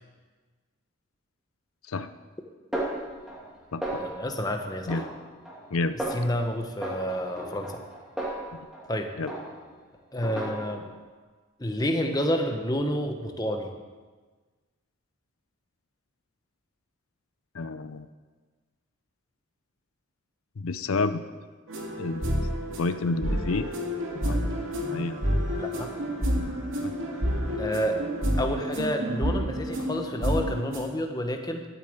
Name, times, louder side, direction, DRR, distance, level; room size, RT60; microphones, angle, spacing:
Snare drum, 2.7-3.5 3.8-4.4 4.9-5.7 6.0-6.4 6.8-8.9 9.3-9.8 10.2-10.9, right 1 dB, ahead, 2.3 m, -35 dB
voice 1, 4.0-5.1 5.9-7.8 8.9-9.1 10.1-10.9 11.6-13.7 25.6-25.9 27.6-28.0 28.4-31.7, equal, 20° left, 4 dB, 1.2 m, -29 dB
voice 2, 17.5-18.1 20.6-21.2 22.0-22.3 22.8-23.7 24.2-24.5 24.9-25.2 26.8-26.9, left 3 dB, 85° left, 11 dB, 0.6 m, -29 dB
sound 1, 21.7-31.0, equal, 75° right, 2.4 m, -29 dB
13.0 x 9.0 x 8.0 m, 1.4 s
head